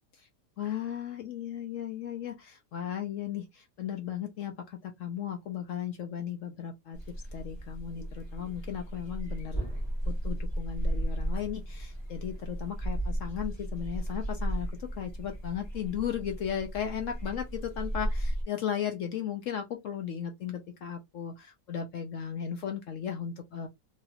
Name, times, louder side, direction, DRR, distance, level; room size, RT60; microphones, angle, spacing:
voice 1, 0.6-9.7 10.1-23.7, left 9 dB, 70° left, 0.7 m, -36 dB
sound 1, 6.9-18.4, right 1 dB, 20° left, 0.8 m, -35 dB
3.1 x 2.9 x 2.4 m
omnidirectional pair, 1.8 m